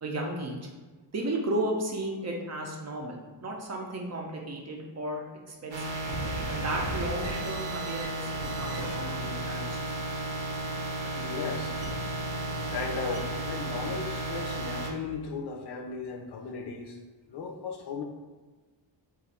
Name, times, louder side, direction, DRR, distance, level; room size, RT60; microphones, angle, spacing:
voice 1, 0.0-0.7 1.1-5.8 6.5-10.1 11.0-11.3, right 1 dB, 35° right, 0 dB, 0.5 m, -34 dB
sound 1, 5.7-14.9, right 2 dB, 75° right, 0.8 m, -33 dB
voice 2, 11.2-11.7 12.7-17.0 17.3-18.0, left 5 dB, 60° left, 2 dB, 0.5 m, -36 dB
2.5 x 2.4 x 4.1 m, 1.3 s
wide cardioid pair, 130°, 45 cm